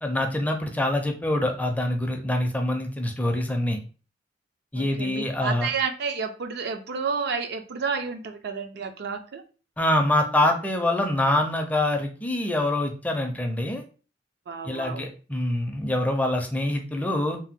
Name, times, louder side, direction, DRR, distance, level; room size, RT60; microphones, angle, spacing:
voice 1, 0.0-3.8 4.7-5.7 9.8-13.8 14.6-17.4, left 1 dB, 10° left, 3 dB, 0.4 m, -25 dB
voice 2, 4.7-9.4 14.5-15.1, right 5 dB, 60° right, 7 dB, 0.4 m, -30 dB
2.8 x 2.0 x 3.5 m, 0.36 s
head